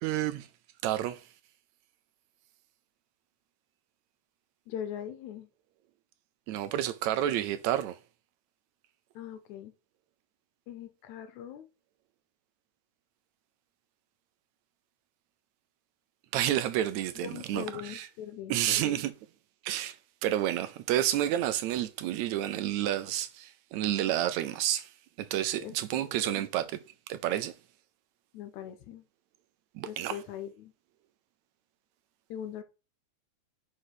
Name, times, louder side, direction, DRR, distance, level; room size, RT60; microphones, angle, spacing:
voice 1, 0.0-0.5 0.8-1.2 6.5-8.0 16.3-18.1 18.5-19.1 19.6-20.0 20.2-24.9 25.2-26.7 27.1-27.5 29.8-30.2, right 12 dB, 80° right, 1.8 m, -30 dB
voice 2, 4.7-5.5 9.2-9.7 10.7-11.7 17.2-19.0 25.6-26.4 28.3-29.0 29.9-30.7 32.3-32.6, left 9 dB, 80° left, 2.2 m, -41 dB
5.5 x 4.9 x 5.8 m
omnidirectional pair, 3.4 m